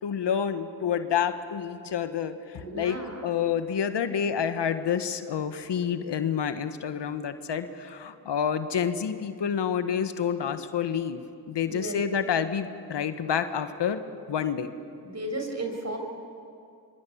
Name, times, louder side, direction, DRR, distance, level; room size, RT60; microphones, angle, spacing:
voice 1, 0.0-11.2 11.5-14.0 14.3-14.7, left 7 dB, 75° left, 9 dB, 1.4 m, -28 dB
voice 2, 2.6-3.3 11.6-12.0 15.0-16.0, right 2 dB, 40° right, 4 dB, 6.5 m, -34 dB
25.0 x 25.0 x 8.6 m, 2.4 s
supercardioid pair, 40°, 42 cm